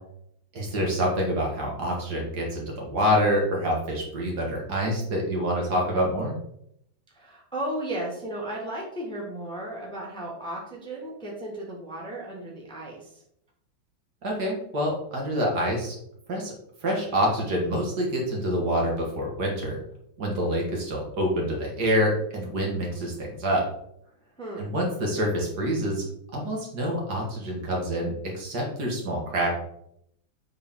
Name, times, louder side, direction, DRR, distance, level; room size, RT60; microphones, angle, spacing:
voice 1, 0.5-6.3 14.2-16.0 16.3-16.5 16.8-19.8 20.2-23.6 24.6-26.1 26.3-29.5, equal, 55° right, -1 dB, 2.1 m, -26 dB
voice 2, 7.1-13.2 24.4-24.7, right 1 dB, 5° left, -3 dB, 1.3 m, -35 dB
7.4 x 4.5 x 3.7 m, 0.73 s
omnidirectional pair, 2.1 m